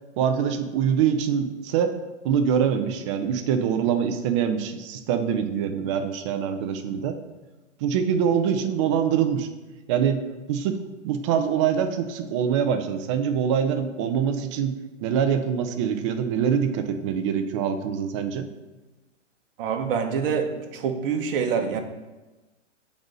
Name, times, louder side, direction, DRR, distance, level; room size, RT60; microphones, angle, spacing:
voice 1, 0.2-1.9 2.2-7.2 7.8-9.5 9.9-10.2 10.5-10.8 11.0-14.7 15.0-18.5, right 8 dB, 25° right, 7 dB, 0.5 m, -24 dB
voice 2, 19.6-21.8, right 6 dB, 50° right, 4 dB, 1.0 m, -26 dB
7.7 x 4.1 x 5.2 m, 1.1 s
hypercardioid pair, 135°, 36 cm